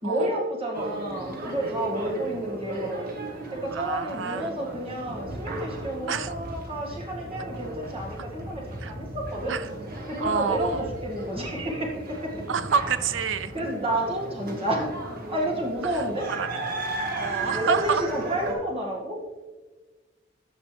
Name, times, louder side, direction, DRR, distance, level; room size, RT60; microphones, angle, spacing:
voice 1, 0.0-3.1 3.5-9.5 10.1-12.5 13.5-14.9 15.3-16.3 17.5-19.2, right 1 dB, 30° right, -2 dB, 2.0 m, -30 dB
sound 1, 0.7-18.5, right 2 dB, 50° right, 1.4 m, -36 dB
voice 2, 3.7-4.5 6.1-6.3 8.8-8.9 9.5-9.7 10.2-10.9 12.5-13.5 15.9-16.0 16.4-16.6 17.2-18.0, right 6 dB, 80° right, 13 dB, 0.5 m, -28 dB
14.0 x 5.1 x 3.3 m, 1.2 s
head